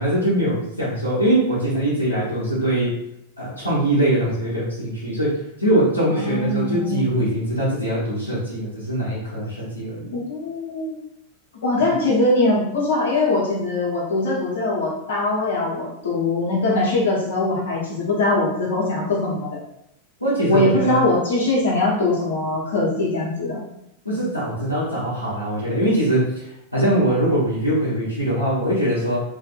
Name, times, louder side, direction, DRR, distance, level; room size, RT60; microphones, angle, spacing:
voice 1, 0.0-2.9 3.4-10.2 20.2-21.0 24.0-26.3 26.7-29.2, right 1 dB, 85° left, -9 dB, 0.8 m, -22 dB
voice 2, 6.1-7.1 10.1-10.9 11.6-19.6 20.5-23.6, left 2 dB, 65° left, -4 dB, 1.0 m, -22 dB
2.7 x 2.5 x 2.4 m, 0.78 s
figure-of-eight pair, 90°, 0 cm